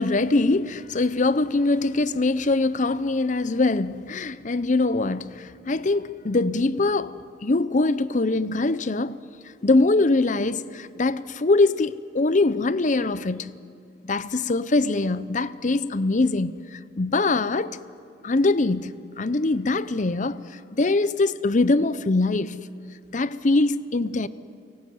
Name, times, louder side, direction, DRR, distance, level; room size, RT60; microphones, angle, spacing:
voice 1, 0.0-7.1 7.4-9.2 9.6-13.6 14.0-17.8 18.2-20.4 20.7-22.6 23.1-24.3, left 2 dB, 45° left, 0.7 m, -23 dB
29.5 x 18.0 x 9.4 m
head